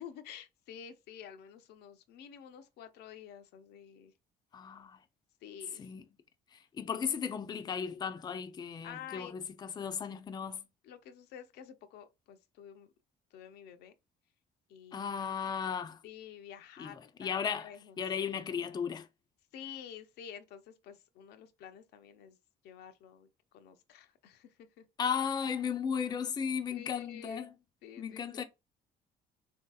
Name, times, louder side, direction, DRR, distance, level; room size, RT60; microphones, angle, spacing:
voice 1, 0.0-4.1 5.4-5.9 8.8-9.3 10.8-12.9 13.3-13.9 14.7-15.5 16.0-18.0 19.5-22.4 22.6-24.8 26.7-27.4 27.8-28.4, left 9 dB, 75° left, 0.5 m, -50 dB
voice 2, 4.5-5.0 5.8-6.0 6.5-10.7 14.9-16.0 16.8-19.1 25.0-27.5 28.0-28.4, left 7 dB, 25° left, 0.4 m, -35 dB
3.2 x 2.7 x 2.3 m
cardioid pair, 110°, 17 cm